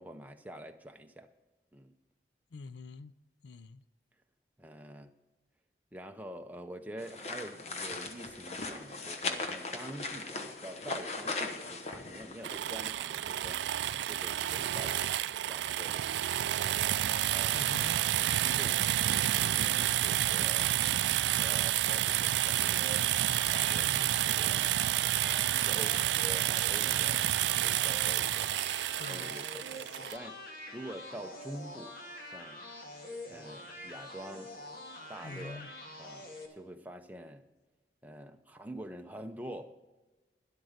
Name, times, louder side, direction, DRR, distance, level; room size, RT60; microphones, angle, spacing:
voice 1, 0.0-1.3 1.7-1.9 4.6-5.1 5.9-13.6 14.1-15.1 15.4-16.8 17.3-17.7 18.2-20.7 21.4-23.2 23.5-24.6 25.2-28.5 29.1-30.4 30.7-32.0 32.3-32.6 33.3-34.6 35.1-35.7 36.0-37.4 38.0-39.9, right 1 dB, 10° right, 0.6 m, -46 dB
voice 2, 2.5-3.1 3.4-3.8 17.5-18.0 23.7-24.2 29.0-29.3 35.2-35.7, left 3 dB, 80° left, 0.5 m, -45 dB
sound 1, 7.0-12.9, left 3 dB, 40° left, 1.0 m, -39 dB
sound 2, 12.4-30.2, right 13 dB, 85° right, 0.3 m, -30 dB
sound 3, 22.7-36.5, left 1 dB, 55° left, 1.9 m, -46 dB
12.0 x 11.0 x 5.1 m
head